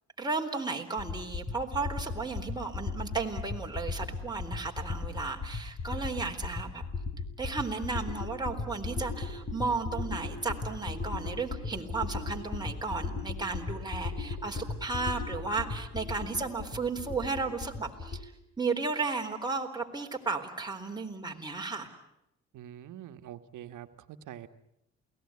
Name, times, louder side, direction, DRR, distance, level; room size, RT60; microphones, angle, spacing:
voice 1, 0.2-6.8 7.4-18.3 18.6-21.9, right 4 dB, 15° right, 2 dB, 3.9 m, -34 dB
sound 1, 1.0-18.2, left 4 dB, 40° left, 6.1 m, -37 dB
voice 2, 22.5-24.5, right 11 dB, 80° right, 9 dB, 1.5 m, -45 dB
28.5 x 19.0 x 9.7 m, 0.83 s
cardioid pair, 90°, 30 cm